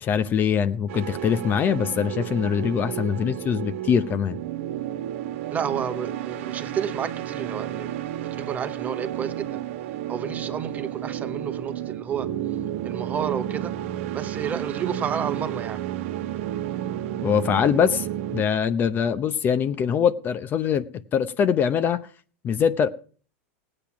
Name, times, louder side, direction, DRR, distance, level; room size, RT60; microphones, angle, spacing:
voice 1, 0.0-4.4 17.2-18.1 18.3-20.8 21.1-22.0 22.4-22.9, left 7 dB, 25° left, 0.7 m, -23 dB
sound 1, 0.9-18.4, right 12 dB, 70° right, 1.3 m, -32 dB
voice 2, 5.5-7.9 8.2-9.6 10.1-12.3 12.8-13.7 14.1-15.8, right 7 dB, 20° right, 1.1 m, -31 dB
17.0 x 8.7 x 6.0 m
supercardioid pair, 150°, 7 cm